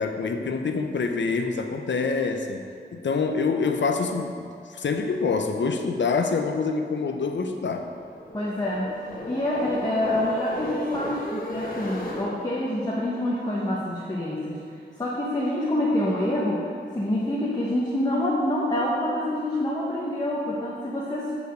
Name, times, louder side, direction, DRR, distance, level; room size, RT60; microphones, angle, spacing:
voice 1, 0.0-2.6 2.9-7.9, left 4 dB, 75° left, 5 dB, 0.7 m, -26 dB
sound 1, 7.6-12.3, left 1 dB, 50° left, 1.4 m, -35 dB
voice 2, 8.3-9.0 9.3-14.6 15.0-21.3, left 1 dB, 20° left, -5 dB, 1.1 m, -26 dB
8.2 x 5.0 x 5.2 m, 2.4 s
wide cardioid pair, 115°, 19 cm